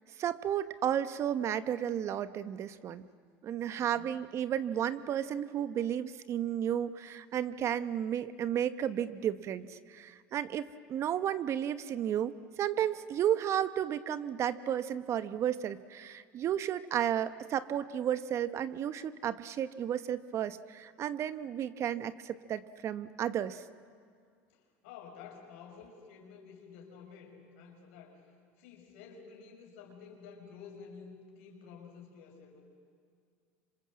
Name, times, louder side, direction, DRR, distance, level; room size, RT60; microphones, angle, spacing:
voice 1, 0.2-3.0 3.4-23.6, right 10 dB, 45° right, 13 dB, 1.1 m, -33 dB
voice 2, 3.7-4.1 24.5-28.2 28.6-32.6, left 6 dB, 80° left, 1 dB, 6.0 m, -51 dB
26.0 x 26.0 x 7.6 m, 2.2 s
supercardioid pair, 95°, 7 cm